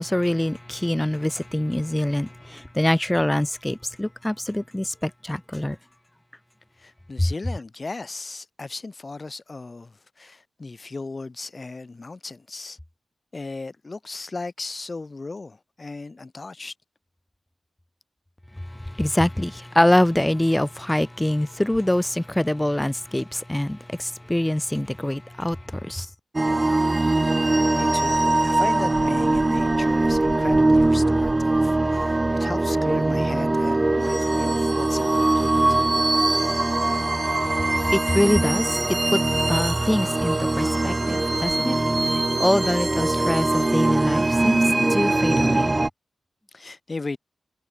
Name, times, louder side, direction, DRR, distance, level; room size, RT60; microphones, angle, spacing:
voice 1, 0.0-5.8 18.7-26.1 37.9-38.8 39.1-39.2 39.5-41.8 42.1-45.7, left 1 dB, 10° left, 3.7 m, -24 dB
voice 2, 6.8-12.8 13.3-16.7 27.7-35.8 46.5-47.2, left 3 dB, 40° left, 7.8 m, -36 dB
sound 1, 26.3-45.9, right 2 dB, 25° right, 2.0 m, -21 dB
cardioid pair, 60°, 0 cm